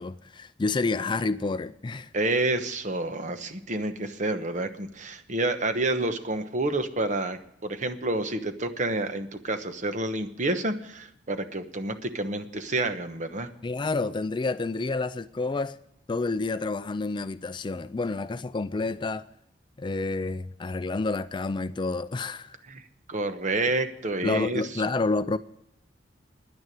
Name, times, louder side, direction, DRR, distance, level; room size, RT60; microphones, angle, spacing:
voice 1, 0.0-2.1 13.6-15.8 16.1-19.3 19.8-22.5 24.2-25.4, left 3 dB, 25° left, 0.4 m, -29 dB
voice 2, 2.1-13.5 22.7-22.8 23.1-24.9, right 2 dB, 45° right, 1.1 m, -29 dB
10.5 x 9.6 x 9.1 m
head